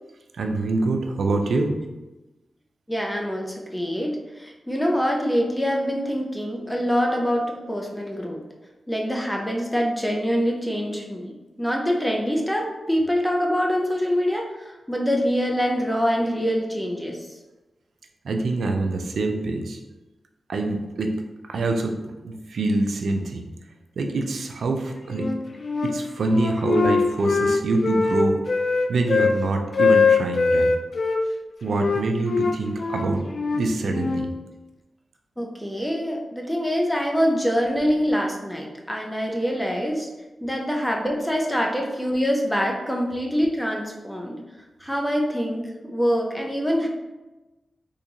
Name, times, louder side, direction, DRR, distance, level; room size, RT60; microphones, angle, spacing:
voice 1, 0.3-1.7 18.2-19.8 20.5-21.1 21.5-23.5 24.0-25.3 25.8-30.7 31.6-34.3 42.8-42.9 45.1-45.2, right 2 dB, 85° right, 4 dB, 0.4 m, -25 dB
voice 2, 2.9-8.4 8.9-17.3 35.4-40.1 40.4-44.4 44.8-46.9, equal, 5° left, 0 dB, 0.5 m, -25 dB
Wind instrument woodwind instrument, 25.1-26.0 26.3-29.4 29.7-31.2 31.8-34.3, left 4 dB, 60° left, 0.3 m, -22 dB
3.7 x 2.5 x 2.8 m, 1.1 s
cardioid pair, 55°, 0 cm